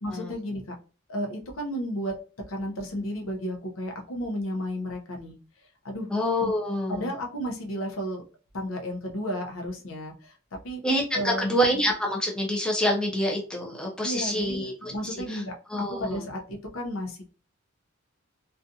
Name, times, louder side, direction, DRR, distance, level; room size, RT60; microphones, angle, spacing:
voice 1, 0.0-0.7 1.1-2.1 2.5-5.4 5.8-6.1 6.9-8.2 8.5-10.3 10.6-10.8 11.1-11.6 14.0-14.6 14.9-17.3, equal, 75° left, 2 dB, 0.6 m, -33 dB
voice 2, 6.1-7.1 10.8-15.4 15.7-16.2, equal, 5° left, -1 dB, 0.4 m, -27 dB
2.5 x 2.3 x 2.6 m, 0.36 s
head